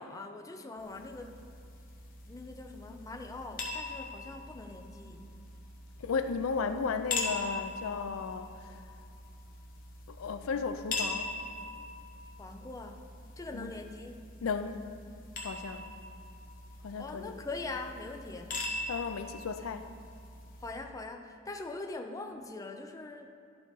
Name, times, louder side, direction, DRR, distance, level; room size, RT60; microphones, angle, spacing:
voice 1, 0.0-1.4 2.3-5.3 12.4-13.0 13.4-14.3 17.0-18.5 20.6-23.3, left 3 dB, 15° left, 5 dB, 0.4 m, -42 dB
sound 1, 0.8-20.7, left 3 dB, 45° left, 1.0 m, -42 dB
voice 2, 6.0-8.8 10.1-11.3 13.5-13.7 14.4-14.8 15.4-15.8 16.8-17.4 18.9-19.8, left 5 dB, 85° left, 9 dB, 0.4 m, -34 dB
11.5 x 3.9 x 4.6 m, 2.4 s
head